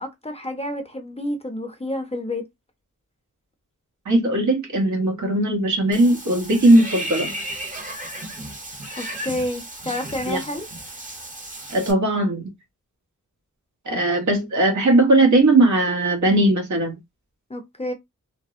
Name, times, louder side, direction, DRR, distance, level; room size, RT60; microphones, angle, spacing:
voice 1, 0.0-2.4 9.0-10.7 17.5-17.9, left 1 dB, 20° left, 0.6 m, -29 dB
voice 2, 4.0-7.3 10.3-10.4 11.7-12.5 13.8-17.0, right 2 dB, 70° right, 1.1 m, -18 dB
Water / Bathtub (filling or washing), 5.9-11.9, right 1 dB, 25° right, 0.8 m, -34 dB
3.4 x 2.0 x 2.4 m
wide cardioid pair, 95°, 30 cm